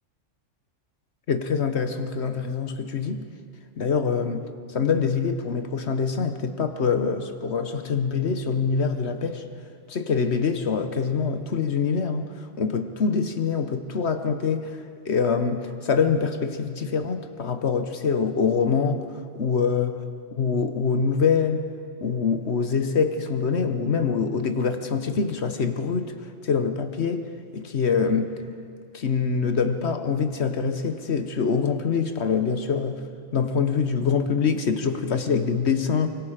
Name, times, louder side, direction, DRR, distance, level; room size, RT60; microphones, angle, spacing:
voice 1, 1.3-3.3 3.8-9.4 9.9-14.8 15.1-19.1 19.3-19.9 20.3-21.6 22.0-26.1 26.4-27.3 27.5-28.3 28.9-33.0 33.3-36.1, left 5 dB, 60° left, 8 dB, 1.3 m, -24 dB
24.5 x 24.5 x 5.0 m, 2.3 s
omnidirectional pair, 1.3 m